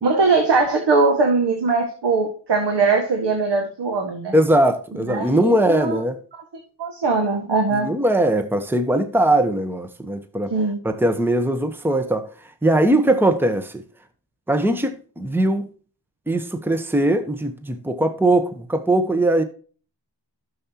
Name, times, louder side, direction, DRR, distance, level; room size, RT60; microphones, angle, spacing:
voice 1, 0.0-4.3 5.1-6.0 6.8-7.9 10.5-10.8, right 4 dB, 75° right, 1.9 m, -20 dB
voice 2, 4.3-6.2 7.7-10.5 10.8-12.2 12.6-13.8 14.5-15.7 16.3-19.4, right 1 dB, 5° right, 1.1 m, -20 dB
12.0 x 7.1 x 2.9 m
cardioid pair, 80°, 42 cm